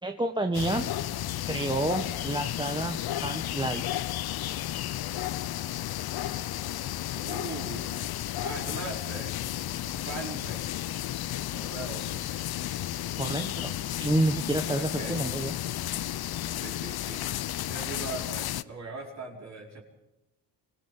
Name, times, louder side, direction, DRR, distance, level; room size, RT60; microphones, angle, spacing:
voice 1, 0.0-0.9 1.5-3.8 13.2-15.5, right 2 dB, 10° right, 5 dB, 1.4 m, -29 dB
sound 1, 0.5-18.6, left 13 dB, 60° left, 0.8 m, -33 dB
voice 2, 7.1-8.1 8.4-9.4 9.8-10.8 11.5-12.3 14.8-15.2 15.9-16.2 16.5-19.8, right 3 dB, 40° right, 0 dB, 4.8 m, -40 dB
24.5 x 16.5 x 8.7 m, 0.95 s
cardioid pair, 100°, 42 cm